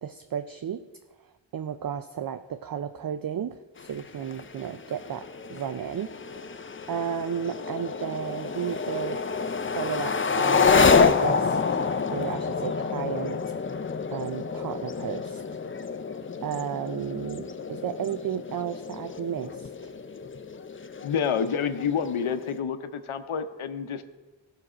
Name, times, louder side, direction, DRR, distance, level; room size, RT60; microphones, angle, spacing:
voice 1, 0.0-0.8 1.5-6.1 6.4-9.2 9.8-11.8 12.1-13.4 14.1-15.6 16.4-19.9, right 8 dB, 50° right, 10 dB, 0.4 m, -33 dB
sound 1, 3.8-22.6, left 5 dB, 25° left, 0.4 m, -28 dB
voice 2, 21.0-24.0, left 7 dB, 90° left, 9 dB, 0.7 m, -28 dB
15.5 x 6.1 x 4.9 m, 1.2 s
wide cardioid pair, 90°, 48 cm